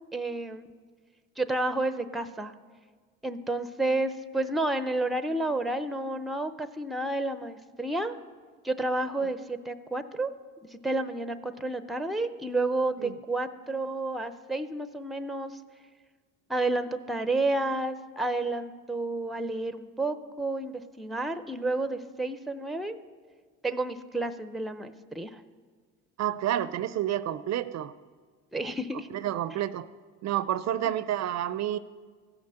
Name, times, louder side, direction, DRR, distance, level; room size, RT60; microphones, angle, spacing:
voice 1, 0.1-0.7 1.4-2.5 3.2-8.1 8.6-10.3 10.7-15.5 16.5-23.0 23.6-25.4 28.5-29.1, right 2 dB, ahead, 11 dB, 0.6 m, -30 dB
voice 2, 26.2-27.9 29.1-29.9 30.2-31.8, right 12 dB, 55° right, 15 dB, 0.5 m, -29 dB
15.5 x 5.9 x 7.7 m, 1.6 s
cardioid pair, 95°, 33 cm